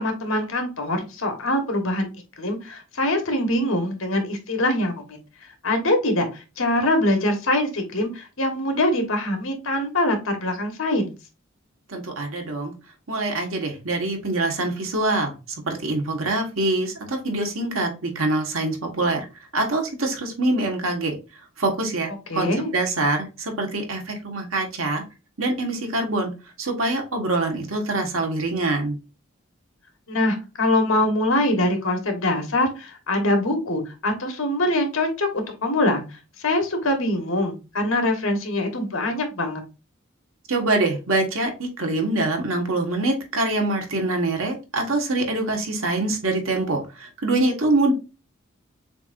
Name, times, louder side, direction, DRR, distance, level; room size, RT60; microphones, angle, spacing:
voice 1, 0.0-2.1 2.4-5.2 5.6-11.1 22.3-22.7 30.1-36.0 36.4-39.6, left 1 dB, 80° left, 5 dB, 1.4 m, -23 dB
voice 2, 11.9-12.7 13.1-15.3 15.7-19.2 19.5-21.2 21.6-25.0 25.4-26.3 26.6-29.0 40.5-47.9, right 2 dB, 85° right, 3 dB, 1.5 m, -24 dB
6.8 x 2.7 x 2.6 m, 0.29 s
head